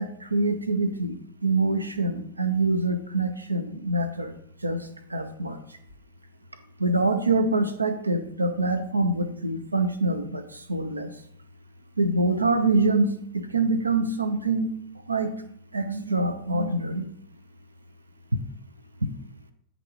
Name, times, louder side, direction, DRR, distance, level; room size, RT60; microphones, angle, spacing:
voice 1, 0.0-4.3 4.6-5.6 6.8-11.1 12.0-14.7 15.1-15.3 15.7-17.1, right 2 dB, 80° right, 9 dB, 0.6 m, -25 dB
9.7 x 3.5 x 3.5 m, 0.69 s
figure-of-eight pair, 90°, 0 cm